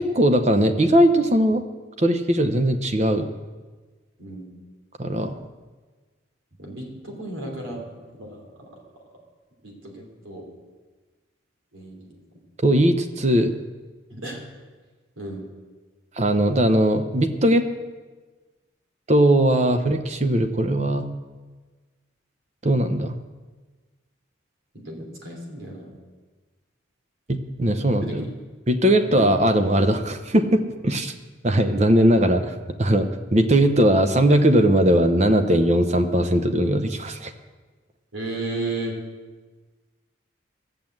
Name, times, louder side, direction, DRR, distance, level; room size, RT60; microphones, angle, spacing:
voice 1, 0.0-1.6 2.0-3.3 5.0-5.4 12.6-13.5 16.2-17.6 19.1-21.1 22.6-23.2 27.3-28.3 28.7-31.1 31.4-37.3, right 1 dB, 35° right, 7 dB, 0.7 m, -19 dB
voice 2, 4.2-4.5 6.6-8.7 9.6-10.5 11.7-12.1 14.1-14.4 15.2-15.5 24.8-25.9 28.1-28.2 29.0-29.3 38.1-38.9, right 2 dB, 85° right, 0 dB, 3.1 m, -34 dB
14.0 x 7.2 x 7.7 m, 1.3 s
head